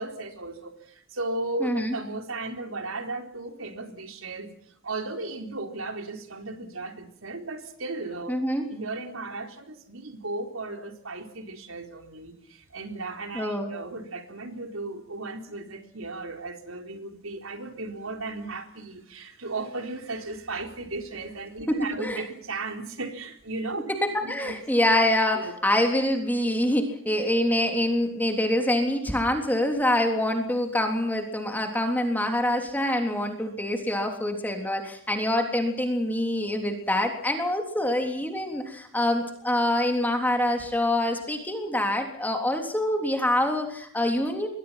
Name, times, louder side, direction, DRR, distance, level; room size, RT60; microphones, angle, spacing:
voice 1, 0.0-4.5 4.8-8.3 8.7-23.8 24.2-24.6 25.3-25.5, right 2 dB, 85° right, 5 dB, 4.2 m, -35 dB
voice 2, 1.6-2.0 8.3-8.6 13.4-13.7 21.7-22.2 23.9-44.5, left 1 dB, 10° left, 4 dB, 3.4 m, -25 dB
27.0 x 23.5 x 5.9 m, 0.64 s
head